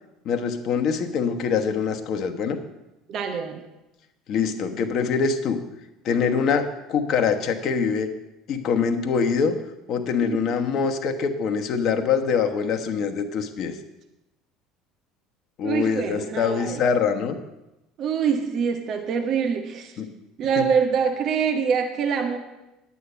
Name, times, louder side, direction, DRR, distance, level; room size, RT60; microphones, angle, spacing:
voice 1, 0.2-2.6 4.3-5.6 6.0-8.1 8.5-9.6 9.9-13.8 15.6-17.3 20.0-20.1 20.6-20.7, left 6 dB, 50° left, 6 dB, 1.1 m, -24 dB
voice 2, 3.1-3.7 10.2-10.4 15.6-16.8 18.0-20.0 20.4-22.4, right 6 dB, 50° right, 6 dB, 1.2 m, -25 dB
10.5 x 8.4 x 5.5 m, 0.97 s
hypercardioid pair, 65°, 0 cm